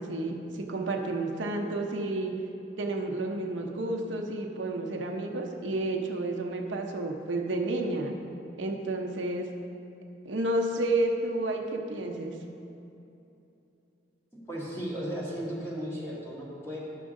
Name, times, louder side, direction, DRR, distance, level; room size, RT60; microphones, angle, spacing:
voice 1, 0.0-2.3 2.8-8.1 8.6-9.5 10.2-12.3, right 2 dB, 90° right, 2 dB, 0.8 m, -31 dB
voice 2, 14.5-16.8, equal, 15° left, -7 dB, 1.8 m, -35 dB
11.0 x 6.2 x 3.7 m, 2.8 s
head